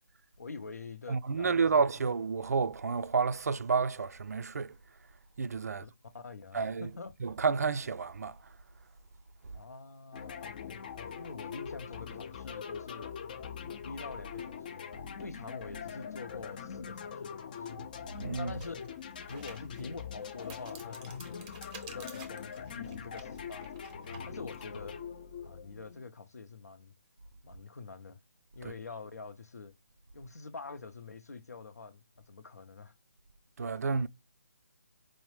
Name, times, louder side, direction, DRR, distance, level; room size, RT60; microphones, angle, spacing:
voice 1, 0.4-1.8 5.7-5.9 6.1-7.1 9.5-13.1 13.6-14.9 15.2-17.8 18.3-18.7 19.3-21.6 21.9-24.0 24.3-25.0 25.4-26.9 27.4-28.2 28.5-29.7 30.1-32.9, left 4 dB, 75° left, 0.7 m, -46 dB
voice 2, 1.1-4.8 5.4-5.8 6.5-6.9 7.2-8.6 9.4-9.5 18.2-18.5 28.6-28.7 33.6-34.1, right 5 dB, 70° right, 0.4 m, -30 dB
sound 1, 10.1-26.0, left 7 dB, 30° left, 0.4 m, -43 dB
sound 2, 17.4-17.5 18.0-24.7, right 4 dB, 20° right, 0.6 m, -52 dB
4.6 x 2.1 x 3.1 m
figure-of-eight pair, 150°, 9 cm